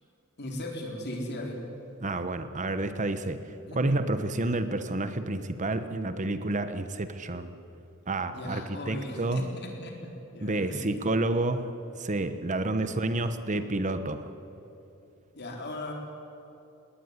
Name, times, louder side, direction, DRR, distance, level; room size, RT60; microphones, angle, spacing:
voice 1, 0.4-1.6 3.7-3.8 8.3-9.4 9.8-10.9 12.7-12.9 15.3-15.9, left 1 dB, 50° left, 1 dB, 4.1 m, -37 dB
voice 2, 2.0-3.4 3.7-7.5 8.1-9.4 10.4-11.7 12.0-14.3, right 2 dB, 35° right, 10 dB, 1.0 m, -29 dB
20.0 x 19.0 x 9.6 m, 2.8 s
head